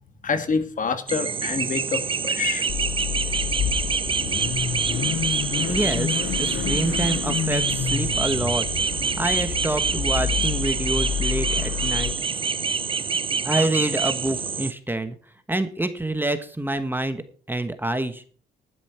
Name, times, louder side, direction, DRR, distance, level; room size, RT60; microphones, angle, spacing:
voice 1, 0.2-2.7 4.5-5.0 5.2-5.6, left 5 dB, 45° left, 9 dB, 1.8 m, -28 dB
sound 1, 1.1-14.7, right 5 dB, 30° right, 0.6 m, -26 dB
Car / Idling / Accelerating revving vroom, 2.7-12.1, left 10 dB, 85° left, 1.1 m, -29 dB
voice 2, 5.7-8.7 9.2-12.1 13.4-15.2 15.5-18.2, right 2 dB, 10° right, 9 dB, 1.3 m, -27 dB
11.5 x 10.0 x 4.5 m, 0.42 s
cardioid pair, 90°, 19 cm